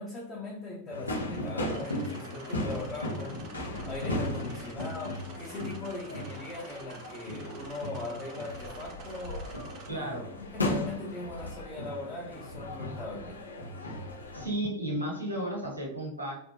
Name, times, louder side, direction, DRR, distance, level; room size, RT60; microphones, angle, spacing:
voice 1, 0.0-9.5 9.9-13.4, left 2 dB, 25° left, 0.7 m, -40 dB
sound 1, 0.9-14.5, left 1 dB, 80° left, 0.7 m, -36 dB
sound 2, 1.2-9.9, right 5 dB, 35° right, 0.6 m, -51 dB
voice 2, 9.9-10.2 14.3-16.3, right 1 dB, 90° right, 1.2 m, -33 dB
3.4 x 2.3 x 2.6 m
figure-of-eight pair, 90°, 0 cm